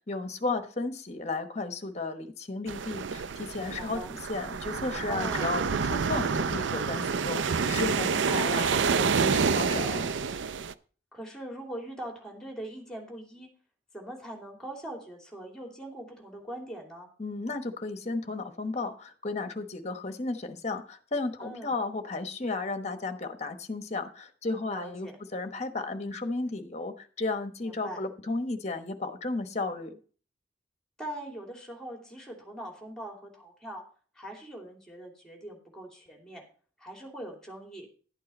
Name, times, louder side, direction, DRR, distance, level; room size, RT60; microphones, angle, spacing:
voice 1, 0.1-10.1 17.2-30.0, left 3 dB, 35° left, 8 dB, 1.1 m, -34 dB
sound 1, 2.7-10.7, right 5 dB, 75° right, 0.5 m, -28 dB
voice 2, 3.6-4.1 5.1-5.5 8.0-8.6 11.1-13.5 13.9-17.1 21.4-21.8 24.6-25.2 27.6-28.0 31.0-33.8 34.1-36.4 36.8-37.9, right 1 dB, 5° left, 1 dB, 2.8 m, -42 dB
11.5 x 8.6 x 4.2 m, 0.41 s
head